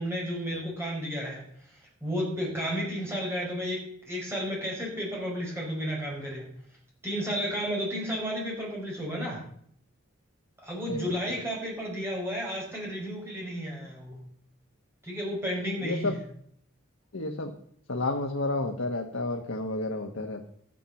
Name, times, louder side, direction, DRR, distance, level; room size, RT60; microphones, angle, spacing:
voice 1, 0.0-1.4 2.0-3.8 4.1-6.5 7.0-9.4 10.6-14.2 15.0-16.1, equal, 10° right, -4 dB, 5.4 m, -32 dB
voice 2, 10.9-11.2 15.8-16.2 17.1-17.5 17.9-20.5, left 2 dB, 75° left, 3 dB, 1.3 m, -31 dB
13.0 x 9.2 x 7.0 m, 0.64 s
head